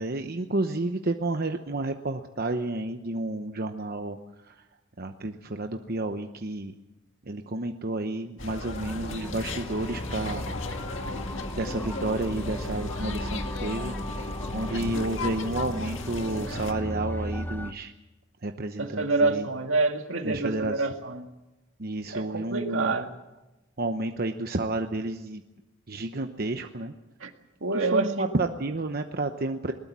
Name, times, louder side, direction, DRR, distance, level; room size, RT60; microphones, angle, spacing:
voice 1, 0.0-4.2 4.4-4.6 5.0-6.7 7.2-10.5 11.5-13.9 14.5-17.9 18.4-19.5 20.2-20.9 21.8-23.0 23.8-25.4 25.9-26.9 27.7-29.7, right 2 dB, 50° right, 6 dB, 1.0 m, -31 dB
sound 1, 8.4-16.7, left 2 dB, 70° left, 1.9 m, -35 dB
sound 2, 8.8-17.7, equal, 10° left, 0.9 m, -36 dB
voice 2, 18.8-21.3 22.1-23.1 27.2-27.3 27.6-28.3, right 3 dB, 75° right, 5 dB, 2.1 m, -27 dB
21.0 x 20.0 x 7.5 m, 1.0 s
head